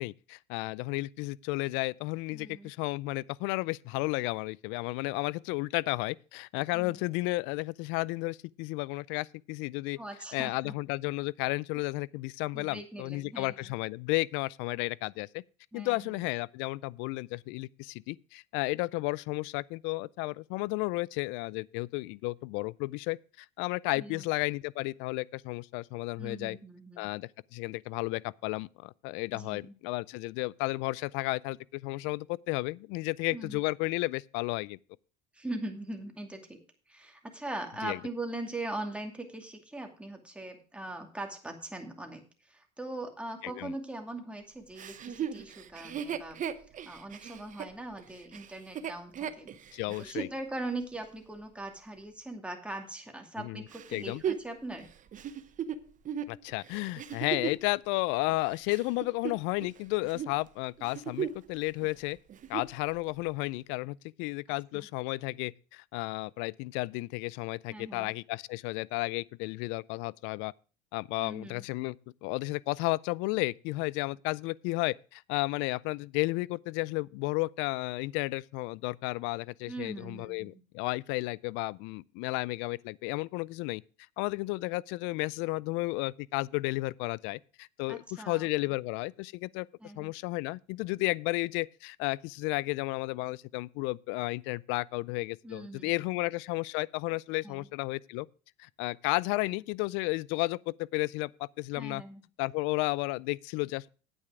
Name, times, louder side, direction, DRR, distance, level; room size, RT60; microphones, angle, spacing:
voice 1, 0.0-10.0 10.3-15.4 15.7-26.6 27.0-34.8 37.8-38.0 43.4-43.7 49.7-50.3 53.4-54.2 56.3-62.2 62.5-70.5 70.9-72.0 72.2-83.8 84.2-89.7 90.0-98.3 98.6-102.0 102.4-103.9, left 22 dB, 70° left, 0.4 m, -33 dB
voice 2, 2.3-2.7 6.7-7.0 10.0-10.7 12.5-13.7 15.7-16.2 24.0-24.3 26.2-27.1 29.3-29.7 33.3-33.6 35.3-36.6 36.9-46.4 46.8-49.5 50.0-54.9 64.7-64.9 67.7-68.1 71.2-71.6 79.7-80.6 87.9-88.7 89.8-90.1 95.4-96.1 97.4-97.7 99.5-99.6 101.8-102.2, right 2 dB, 5° right, 2.4 m, -41 dB
Chuckle chortle, 44.8-50.4 50.9-51.0 53.7-57.7 58.3-59.8 60.0-60.4 60.8-61.5 61.8-61.9 62.3-62.8 63.4-63.5, right 8 dB, 40° right, 0.8 m, -37 dB
8.9 x 8.8 x 4.8 m
supercardioid pair, 90°, 21 cm